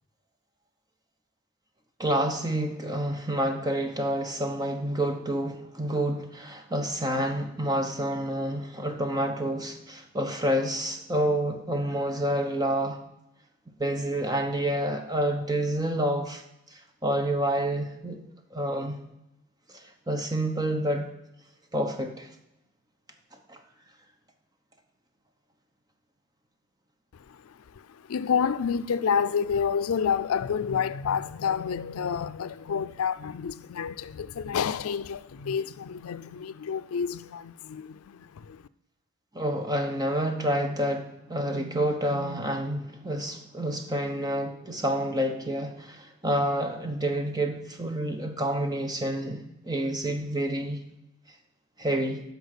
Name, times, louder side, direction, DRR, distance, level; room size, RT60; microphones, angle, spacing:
voice 1, 2.0-13.0 13.8-16.4 16.7-18.2 18.5-19.0 19.7-21.1 21.7-22.3 23.5-23.6 39.3-50.8 51.8-52.2, right 1 dB, 20° right, 1.1 m, -28 dB
voice 2, 27.3-38.6, left 7 dB, 85° left, 0.4 m, -29 dB
12.5 x 4.9 x 6.7 m
head